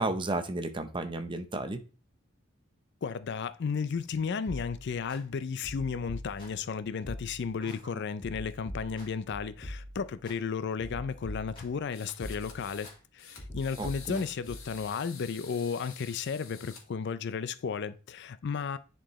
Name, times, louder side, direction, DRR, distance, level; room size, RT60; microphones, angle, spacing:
voice 1, 0.0-1.8 7.6-7.7 13.8-14.2, right 2 dB, 25° right, 0.7 m, -33 dB
voice 2, 3.0-18.8, left 5 dB, 55° left, 0.4 m, -34 dB
sound 1, 4.5-5.2 5.6-6.7 7.0-7.8 8.2-10.4 10.8-11.9 12.2-13.0 13.4-14.8, equal, 25° left, 3.8 m, -43 dB
sound 2, 11.9-12.9 13.2-16.8, left 6 dB, 75° left, 1.8 m, -49 dB
10.0 x 4.5 x 3.1 m
head